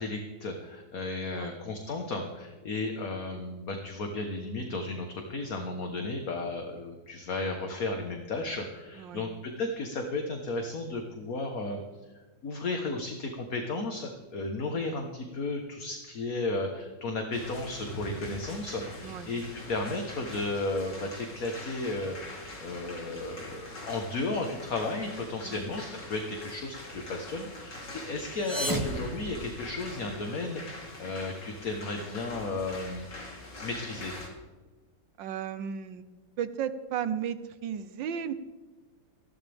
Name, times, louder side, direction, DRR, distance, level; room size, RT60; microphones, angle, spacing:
voice 1, 0.0-11.8 12.4-19.4 19.7-33.1 33.6-34.1, left 2 dB, 55° left, 4 dB, 1.7 m, -34 dB
voice 2, 9.0-9.3 19.0-19.3 25.4-25.7 35.2-36.0 36.4-38.3, right 8 dB, 80° right, 12 dB, 1.6 m, -34 dB
sound 1, 17.3-34.3, left 1 dB, 70° left, 3.9 m, -44 dB
sound 2, 28.2-30.1, right 1 dB, 10° right, 1.6 m, -35 dB
19.5 x 16.0 x 3.6 m, 1.2 s
omnidirectional pair, 2.0 m